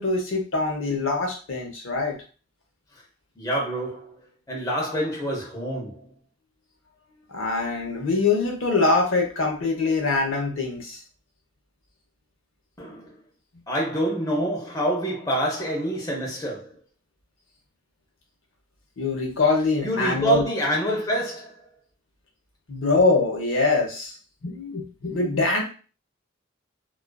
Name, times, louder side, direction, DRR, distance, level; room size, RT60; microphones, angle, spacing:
voice 1, 0.0-2.2 7.3-11.0 19.0-20.4 22.7-24.1 24.4-25.6, left 3 dB, 80° left, 0.7 m, -23 dB
voice 2, 3.4-4.2 4.5-6.0 12.8-13.2 13.7-16.7 19.8-21.6, right 1 dB, 15° left, 0.6 m, -26 dB
2.3 x 2.3 x 2.2 m
head